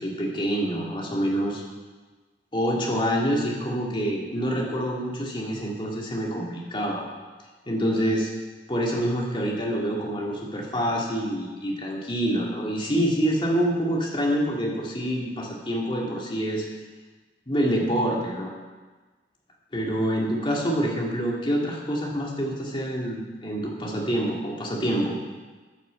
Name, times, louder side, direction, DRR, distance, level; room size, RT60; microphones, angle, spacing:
voice 1, 0.0-1.6 2.5-7.0 7.7-8.3 8.7-16.7 17.5-18.5 19.7-25.1, equal, 25° left, -2 dB, 2.5 m, -26 dB
9.6 x 9.4 x 7.6 m, 1.3 s
head